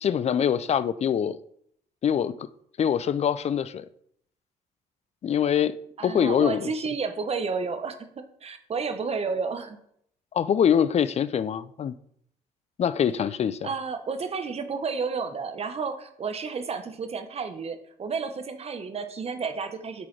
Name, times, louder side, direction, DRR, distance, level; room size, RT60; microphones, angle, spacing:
voice 1, 0.0-1.4 2.0-2.3 2.8-3.9 5.2-5.7 6.0-6.7 10.3-12.0 12.8-13.7, left 8 dB, 45° left, 0.4 m, -24 dB
voice 2, 6.0-9.8 13.6-20.1, right 5 dB, 40° right, 0.9 m, -31 dB
11.0 x 3.8 x 3.3 m
cardioid pair, 85°, 16 cm